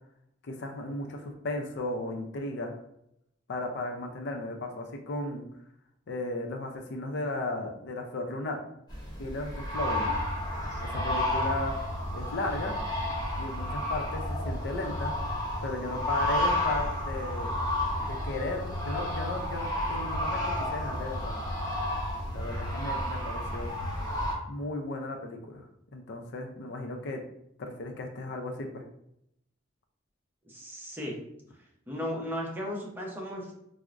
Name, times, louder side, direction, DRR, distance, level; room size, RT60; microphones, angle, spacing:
voice 1, 0.4-2.7 3.5-5.4 6.1-8.6 9.2-10.2 10.9-11.7 12.1-12.8 13.4-15.1 15.6-17.5 18.1-21.3 22.3-23.7 24.5-25.6 25.9-27.2 27.6-28.8, left 2 dB, 60° left, 3 dB, 0.4 m, -35 dB
sound 1, 8.9-24.3, left 1 dB, 20° left, 0.8 m, -31 dB
voice 2, 30.4-31.1 31.9-33.5, equal, 10° right, -2 dB, 0.7 m, -35 dB
4.5 x 2.0 x 2.4 m, 0.76 s
head